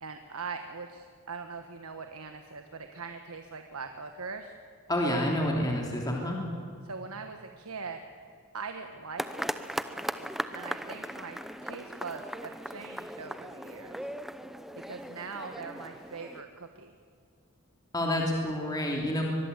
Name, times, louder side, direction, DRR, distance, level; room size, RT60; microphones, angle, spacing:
voice 1, 0.0-4.6 6.8-8.0 8.5-9.5 10.5-14.1 14.8-16.9, right 4 dB, 80° right, 6 dB, 1.4 m, -41 dB
voice 2, 4.9-6.4 17.9-19.2, left 1 dB, 15° left, -1 dB, 3.0 m, -28 dB
sound 1, 9.2-16.4, equal, ahead, 0.8 m, -38 dB
23.5 x 21.5 x 8.2 m, 2.3 s
head